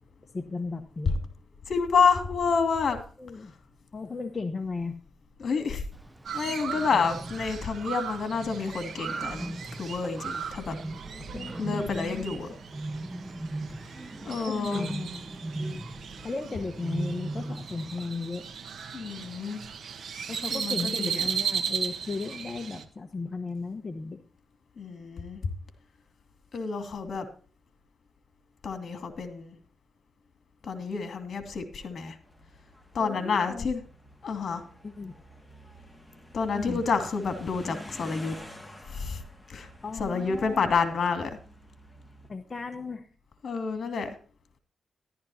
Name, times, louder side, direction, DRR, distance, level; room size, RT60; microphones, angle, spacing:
voice 1, 0.3-1.1 3.2-3.5 3.9-5.0 11.3-12.4 14.5-15.2 15.6-15.8 16.2-18.5 20.3-24.2 33.0-33.7 34.8-35.1 36.5-36.8 39.8-40.7 42.3-43.1, left 4 dB, 35° left, 5 dB, 1.1 m, -35 dB
voice 2, 1.7-3.0 3.4-3.5 5.4-5.8 6.3-10.8 11.6-12.5 14.2-14.9 18.9-19.6 20.5-21.3 24.8-25.4 26.5-27.3 28.6-29.5 30.6-32.2 32.9-33.8 34.2-34.6 36.3-38.3 38.9-39.2 39.5-39.7 40.0-41.4 43.4-44.1, left 5 dB, 60° left, 7 dB, 2.6 m, -29 dB
Bird, 5.9-18.1, right 2 dB, 15° right, 0.7 m, -39 dB
Crow, 6.3-22.8, right 7 dB, 70° right, 1.5 m, -36 dB
sound 1, 32.2-42.3, equal, 5° left, 2.1 m, -49 dB
14.0 x 12.0 x 2.8 m, 0.42 s
cardioid pair, 90°, 0 cm